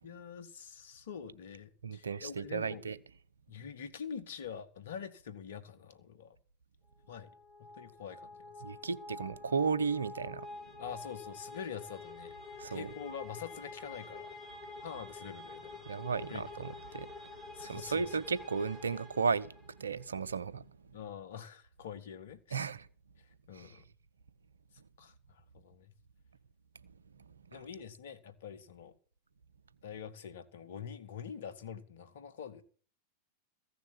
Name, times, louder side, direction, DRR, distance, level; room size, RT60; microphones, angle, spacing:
voice 1, 0.0-2.8 3.5-6.4 7.1-7.3 7.6-8.3 10.8-12.3 12.7-14.3 14.8-15.8 16.3-16.7 17.5-18.2 20.9-22.6 23.2-23.8 25.0-25.9 27.5-28.9 29.8-32.6, left 7 dB, 60° left, 1.6 m, -45 dB
voice 2, 1.8-3.0 8.6-10.5 12.6-12.9 15.9-17.1 17.6-19.5 19.8-20.7 22.5-22.9 23.5-23.8 27.5-27.6, right 5 dB, 70° right, 0.7 m, -34 dB
sound 1, 7.1-19.9, left 3 dB, 15° left, 5.2 m, -48 dB
15.5 x 6.8 x 8.4 m
figure-of-eight pair, 90°, 0 cm